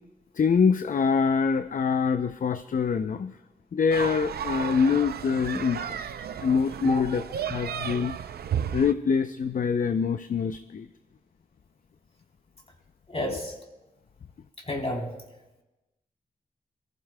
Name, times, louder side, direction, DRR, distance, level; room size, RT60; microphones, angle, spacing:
voice 1, 0.3-3.4 3.7-6.1 6.4-7.2 7.5-8.1 8.7-10.9, left 6 dB, 60° left, 10 dB, 0.5 m, -25 dB
sound 1, 3.9-8.9, right 8 dB, 85° right, 0.5 m, -33 dB
voice 2, 13.1-13.6 14.6-15.1, left 1 dB, 40° left, 0 dB, 3.5 m, -30 dB
23.5 x 14.5 x 2.2 m, 1.0 s
cardioid pair, 55°, 16 cm